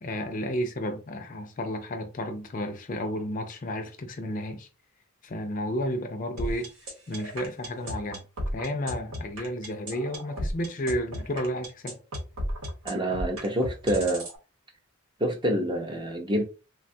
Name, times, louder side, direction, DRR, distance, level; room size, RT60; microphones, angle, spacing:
voice 1, 0.0-4.7 5.2-6.7 7.1-8.2 8.5-12.0, equal, 35° left, 0.4 m, -32 dB
sound 1, 6.4-14.4, equal, 80° right, 1.0 m, -34 dB
voice 2, 12.8-14.2 15.2-16.4, right 1 dB, 20° right, 0.5 m, -27 dB
3.4 x 2.2 x 2.6 m
head